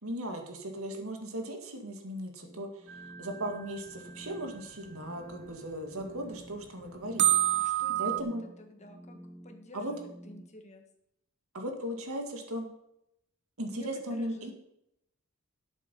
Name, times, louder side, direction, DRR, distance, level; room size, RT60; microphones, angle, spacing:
voice 1, 0.0-8.4 9.7-9.9 11.5-12.7 13.6-14.5, equal, 75° right, 4 dB, 2.0 m, -37 dB
sound 1, 2.4-10.5, equal, ahead, 0.9 m, -51 dB
sound 2, 2.9-4.6 5.4-5.5 6.0-6.1 6.3-6.4 7.2-8.2, right 16 dB, 50° right, 0.6 m, -29 dB
voice 2, 7.6-8.3 8.6-9.2 9.4-10.8 13.7-14.5, left 1 dB, 30° left, 4 dB, 1.5 m, -50 dB
11.5 x 8.3 x 5.5 m, 0.81 s
head